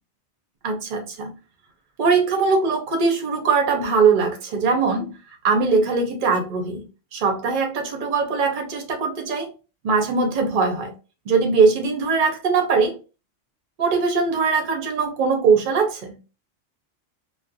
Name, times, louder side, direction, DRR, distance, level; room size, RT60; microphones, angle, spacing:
voice 1, 0.6-1.3 2.0-5.1 5.4-9.5 9.8-10.9 11.3-13.0 13.8-16.2, right 4 dB, 50° right, 0.7 m, -21 dB
2.4 x 2.1 x 2.6 m
omnidirectional pair, 1.3 m